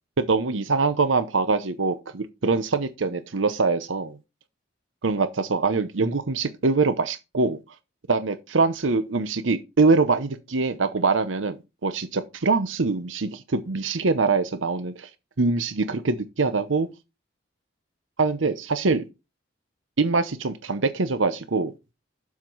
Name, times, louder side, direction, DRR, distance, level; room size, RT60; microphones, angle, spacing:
voice 1, 0.2-4.2 5.0-7.6 8.1-11.6 11.8-15.1 15.4-16.9 18.2-19.0 20.0-21.7, right 4 dB, 85° right, 0.8 m, -23 dB
7.3 x 5.9 x 4.6 m
head